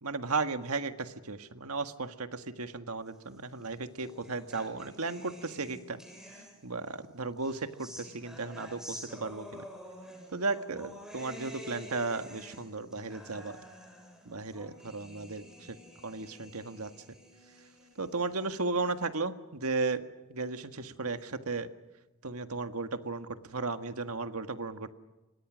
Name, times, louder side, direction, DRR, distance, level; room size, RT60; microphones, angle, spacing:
voice 1, 0.0-6.0 6.6-9.7 10.3-13.6 14.3-15.8 16.0-16.9 18.0-21.7 22.2-24.9, right 3 dB, 90° right, 8 dB, 1.7 m, -35 dB
sound 1, 3.5-6.9 7.4-18.8, equal, 5° right, 7.0 m, -49 dB
29.5 x 24.5 x 6.3 m, 1.1 s
head